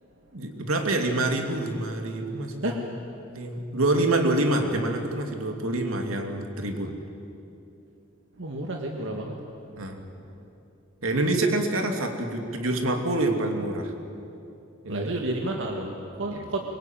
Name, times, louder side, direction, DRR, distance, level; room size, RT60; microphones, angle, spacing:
voice 1, 0.3-3.0 3.3-6.9 9.8-10.0 11.0-13.9 14.8-15.1 16.3-16.5, right 2 dB, 80° right, 4 dB, 2.8 m, -26 dB
voice 2, 8.4-9.4 14.9-16.6, right 1 dB, 65° right, 1 dB, 2.0 m, -30 dB
24.5 x 22.5 x 9.3 m, 2.8 s
head